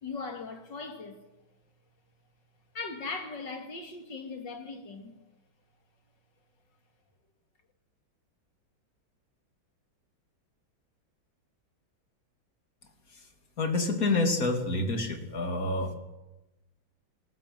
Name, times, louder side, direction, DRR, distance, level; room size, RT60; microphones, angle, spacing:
voice 1, 0.0-1.2 2.7-5.1, left 4 dB, 60° left, 3.1 m, -39 dB
voice 2, 13.6-15.9, left 2 dB, 45° left, 3.2 m, -28 dB
20.0 x 18.5 x 9.2 m
omnidirectional pair, 2.2 m